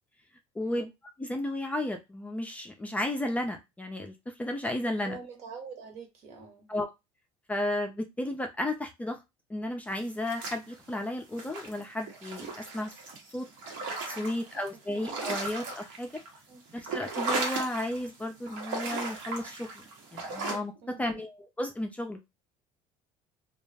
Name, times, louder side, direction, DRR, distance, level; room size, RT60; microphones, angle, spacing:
voice 1, 0.6-0.9 1.2-5.2 6.7-6.9 7.5-9.2 9.5-12.9 13.3-13.5 14.1-16.1 16.7-19.7 20.1-22.3, left 1 dB, 10° left, 0.4 m, -33 dB
voice 2, 4.9-6.7 14.1-14.6 14.9-15.3 16.5-16.6 20.8-21.2, right 5 dB, 60° right, 1.2 m, -46 dB
sound 1, 10.1-11.0 11.3-14.7 15.0-16.4 16.7-18.1 18.5-20.6, right 3 dB, 80° right, 1.1 m, -36 dB
2.3 x 2.0 x 3.3 m
cardioid pair, 125°, 13 cm